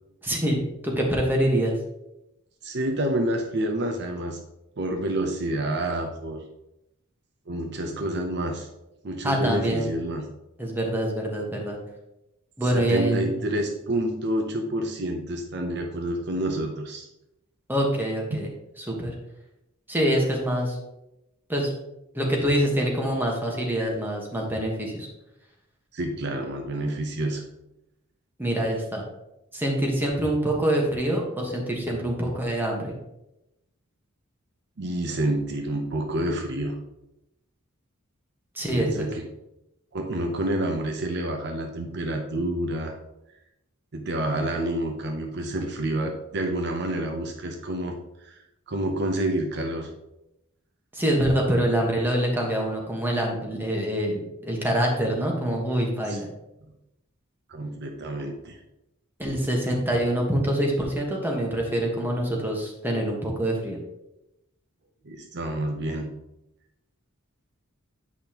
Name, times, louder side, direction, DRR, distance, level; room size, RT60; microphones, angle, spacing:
voice 1, 0.2-1.8 9.2-9.9 10.6-11.8 12.6-13.3 17.7-18.5 18.8-19.1 19.9-20.8 21.5-21.7 22.1-25.1 28.4-29.0 29.5-32.9 38.5-39.1 50.9-56.3 59.2-63.8, right 1 dB, 10° right, -1 dB, 1.3 m, -25 dB
voice 2, 2.6-4.4 4.8-6.4 7.5-8.7 9.0-10.3 12.6-17.1 18.3-18.4 25.9-27.4 34.8-36.8 38.7-39.3 39.9-43.0 43.9-49.9 56.1-56.2 57.5-58.6 65.0-66.1, right 1 dB, 55° right, 3 dB, 0.7 m, -28 dB
8.4 x 5.4 x 2.9 m, 0.89 s
head